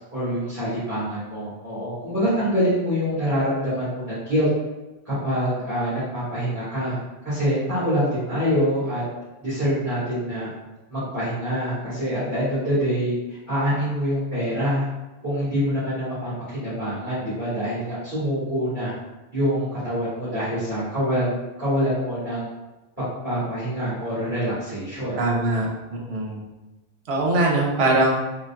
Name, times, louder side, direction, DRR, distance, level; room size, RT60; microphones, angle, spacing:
voice 1, 0.1-4.5 5.0-6.9 7.2-9.0 9.4-10.5 10.9-13.1 13.5-14.8 15.2-18.9 19.3-22.5 23.2-25.2, equal, 15° right, -14 dB, 1.5 m, -25 dB
voice 2, 25.1-26.4 27.1-28.1, right 2 dB, 80° right, -1 dB, 0.9 m, -22 dB
3.8 x 2.2 x 2.3 m, 1.1 s
omnidirectional pair, 1.1 m